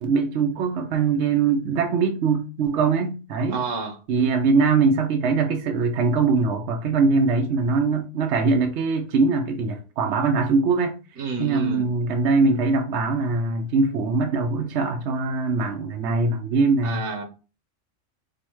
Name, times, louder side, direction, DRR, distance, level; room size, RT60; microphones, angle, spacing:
voice 1, 0.0-3.6 4.1-10.9 11.4-17.0, right 4 dB, 70° right, 1.0 m, -22 dB
voice 2, 3.5-4.0 11.2-11.8 16.8-17.2, right 3 dB, 85° right, 1.3 m, -29 dB
5.3 x 2.1 x 4.4 m
omnidirectional pair, 1.3 m